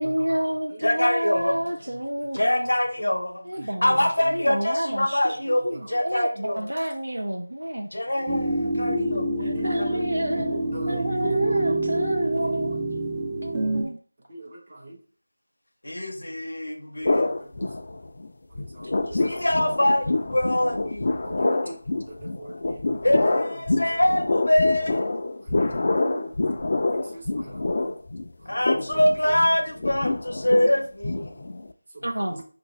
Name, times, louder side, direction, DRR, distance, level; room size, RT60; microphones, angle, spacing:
voice 1, 0.0-2.7 3.5-5.2 5.6-7.9 9.4-12.8 13.4-14.0 32.0-32.4, equal, 85° right, 0.5 m, -29 dB
voice 2, 0.8-1.6 2.3-3.5 3.8-6.7 7.9-9.3 9.6-9.9 10.4-11.0 15.8-17.3 19.1-21.1 23.0-25.1 28.5-31.4, left 1 dB, 75° left, 0.7 m, -24 dB
sound 1, 8.3-13.8, right 1 dB, 10° right, 0.5 m, -26 dB
voice 3, 9.4-10.0 14.3-15.0 17.1-17.2 18.8-19.1 21.2-21.7 22.1-23.0 25.5-26.3 27.1-27.6, right 2 dB, 40° right, 0.8 m, -42 dB
sound 2, 17.0-18.3 18.5-31.7, left 2 dB, 45° left, 0.3 m, -26 dB
4.6 x 2.5 x 3.0 m
figure-of-eight pair, 170°, 0 cm